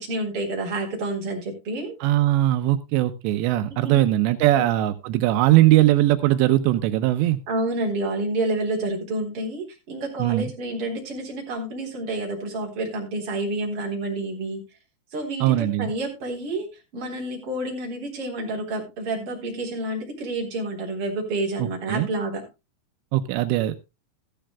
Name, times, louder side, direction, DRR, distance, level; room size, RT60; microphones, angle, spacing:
voice 1, 0.0-1.9 3.7-4.2 7.5-14.6 15.1-16.7 16.9-22.4, right 2 dB, 30° right, 1 dB, 4.0 m, -29 dB
voice 2, 2.0-7.4 10.2-10.5 15.4-15.9 21.6-22.1 23.1-23.8, right 15 dB, 90° right, 11 dB, 2.5 m, -20 dB
14.5 x 13.5 x 2.2 m, 0.26 s
omnidirectional pair, 6.0 m